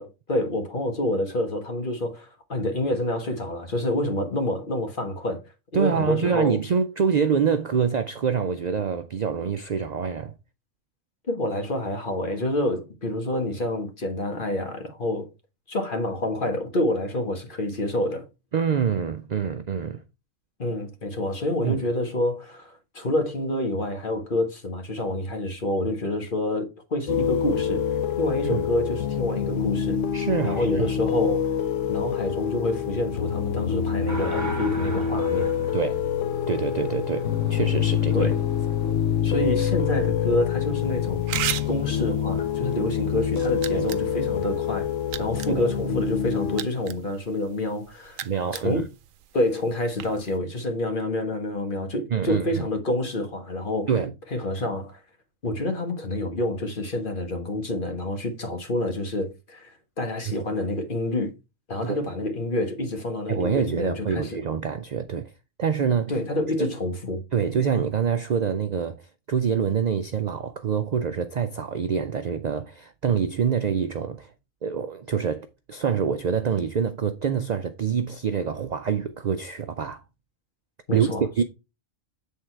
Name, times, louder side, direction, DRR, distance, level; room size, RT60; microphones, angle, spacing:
voice 1, 0.0-5.4 5.7-6.6 11.3-15.3 15.7-18.3 20.6-27.9 28.2-30.0 30.4-31.5 31.9-35.5 38.1-38.4 39.2-41.3 41.7-44.9 45.2-48.3 48.5-48.9 49.3-53.9 54.3-55.0 55.4-59.7 60.0-61.3 61.7-64.4 66.1-67.2 80.9-81.4, left 1 dB, 40° left, 1.5 m, -28 dB
voice 2, 5.7-10.3 18.5-20.0 21.6-21.8 28.5-28.7 30.1-30.9 35.7-36.1 36.5-38.3 43.7-43.9 45.5-45.7 48.2-48.9 52.1-52.6 53.9-54.1 61.8-62.0 63.3-65.3 65.6-66.1 66.6-66.7 67.3-69.0 69.3-74.3 74.6-80.0 80.9-81.4, right 6 dB, 60° right, 0.4 m, -26 dB
sound 1, 27.1-46.6, left 8 dB, 75° left, 1.0 m, -26 dB
sound 2, 34.1-39.9 43.3-43.5, right 1 dB, 15° right, 1.2 m, -39 dB
sound 3, 40.8-50.4, right 11 dB, 90° right, 1.0 m, -38 dB
8.2 x 3.7 x 4.4 m
omnidirectional pair, 1.3 m